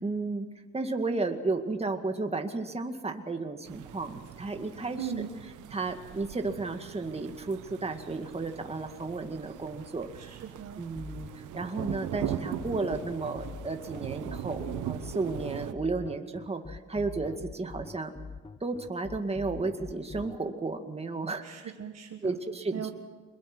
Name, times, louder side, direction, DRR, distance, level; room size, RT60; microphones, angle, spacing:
voice 1, 0.0-0.5 0.7-5.3 5.7-10.3 10.8-18.1 18.6-21.4 22.2-22.9, right 3 dB, 20° right, 5 dB, 2.1 m, -33 dB
sound 1, 3.7-15.7, right 11 dB, 85° right, 1.1 m, -40 dB
voice 2, 5.0-5.3 10.1-10.8 21.4-22.3 22.7-22.9, right 8 dB, 55° right, 3 dB, 1.8 m, -38 dB
sound 2, 11.0-20.4, left 4 dB, 15° left, 0.7 m, -43 dB
24.5 x 21.5 x 6.3 m, 1.4 s
cardioid pair, 90°, 30 cm